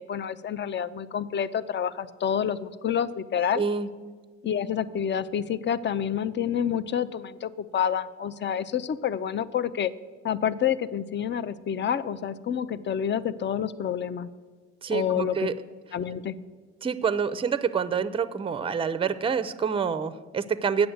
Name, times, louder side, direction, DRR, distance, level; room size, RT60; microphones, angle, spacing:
voice 1, 0.0-3.6 4.4-9.9 10.2-14.3 14.9-15.5 15.9-16.3, left 8 dB, 40° left, 16 dB, 0.5 m, -28 dB
voice 2, 3.6-3.9 14.8-15.5 16.8-20.9, right 6 dB, 20° right, 14 dB, 0.4 m, -27 dB
7.9 x 6.9 x 7.8 m, 1.4 s
cardioid pair, 85°, 29 cm